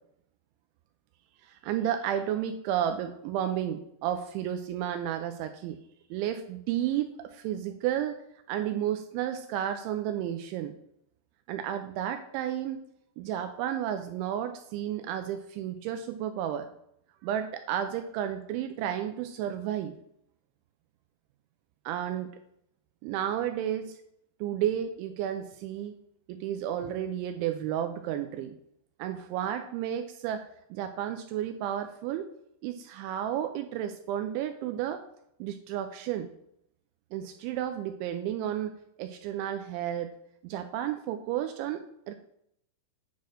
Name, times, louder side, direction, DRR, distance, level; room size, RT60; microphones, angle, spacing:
voice 1, 1.4-5.8 6.1-8.2 8.5-10.7 11.5-12.8 13.2-16.7 17.2-19.9 21.9-22.3 23.0-24.0 24.4-26.0 26.3-28.5 29.0-32.3 32.6-35.0 35.4-36.3 37.1-40.1 40.4-42.1, right 10 dB, 90° right, 7 dB, 2.6 m, -32 dB
9.4 x 4.3 x 6.4 m, 0.72 s
omnidirectional pair, 5.9 m